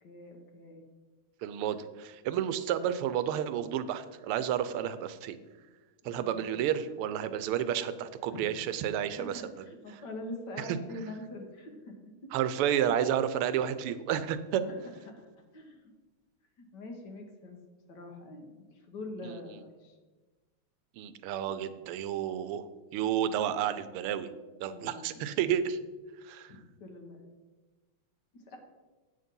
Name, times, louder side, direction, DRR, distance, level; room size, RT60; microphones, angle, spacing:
voice 1, 0.0-0.8 6.0-6.5 8.3-8.4 9.2-12.0 13.9-14.0 14.6-15.8 16.6-17.6 17.9-20.0 24.7-25.2 26.5-27.2 28.3-28.6, left 2 dB, 55° left, 3 dB, 1.7 m, -44 dB
voice 2, 1.4-5.4 6.0-9.4 10.6-10.8 12.3-14.6 19.2-19.4 21.0-22.7 22.9-24.3 24.6-25.8 26.2-26.5, right 10 dB, 90° right, 13 dB, 1.5 m, -31 dB
8.4 x 6.5 x 5.3 m, 1.3 s
omnidirectional pair, 2.4 m